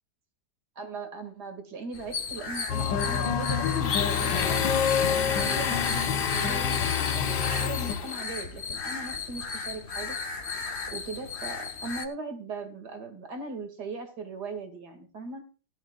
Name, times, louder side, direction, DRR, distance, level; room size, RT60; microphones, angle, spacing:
voice 1, 0.8-4.8 5.1-6.0 6.3-10.2 10.9-15.4, right 3 dB, 65° right, 7 dB, 3.0 m, -39 dB
sound 1, 1.9-12.1, left 4 dB, 40° left, 1.4 m, -35 dB
sound 2, 2.7-7.9, left 7 dB, 80° left, 1.7 m, -28 dB
Domestic sounds home sounds, 3.8-8.2, left 7 dB, 55° left, 0.6 m, -31 dB
16.5 x 12.5 x 2.4 m, 0.36 s
omnidirectional pair, 1.9 m